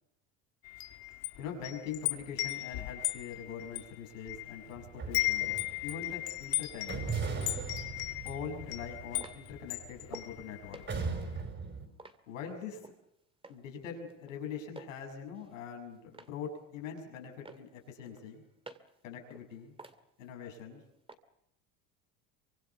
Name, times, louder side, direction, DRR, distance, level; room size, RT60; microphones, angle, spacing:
Wind chime, 0.7-4.7 5.0-10.9, left 17 dB, 65° left, 2.0 m, -36 dB
voice 1, 1.4-5.5 5.8-7.1 8.2-10.8 12.3-12.8 13.5-18.4 19.0-19.7 20.2-20.8, left 7 dB, 90° left, 3 dB, 6.3 m, -43 dB
sound 1, 4.7-6.1 6.9-10.3 10.9-11.9, right 4 dB, 30° right, 5.5 m, -38 dB
sound 2, 8.6-10.4 10.7-13.0 13.4-13.8 14.1-15.0 15.3-16.4 16.8-17.2 17.5-19.0 19.3-20.7 21.1-21.2, right 3 dB, 15° right, 2.2 m, -52 dB
26.0 x 25.0 x 7.0 m, 0.80 s
supercardioid pair, 90°, 38 cm